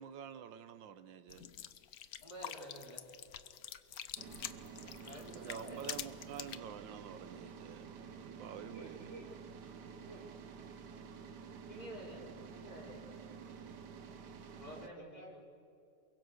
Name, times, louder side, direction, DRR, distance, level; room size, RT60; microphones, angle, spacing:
voice 1, 0.0-1.5 5.3-7.9 8.2-9.1, right 8 dB, 85° right, 11 dB, 1.7 m, -48 dB
sound 1, 1.3-6.6, left 10 dB, 60° left, 1.2 m, -46 dB
voice 2, 2.2-3.1 5.0-5.8 8.5-8.6 11.7-13.1 14.5-15.2, equal, 20° left, -2 dB, 4.4 m, -50 dB
sound 2, 4.2-14.9, right 6 dB, 65° right, 1.8 m, -50 dB
voice 3, 8.6-9.3 9.9-10.3 14.8-15.4, right 2 dB, 40° right, 2 dB, 1.6 m, -52 dB
28.0 x 23.0 x 6.5 m, 2.7 s
omnidirectional pair, 2.0 m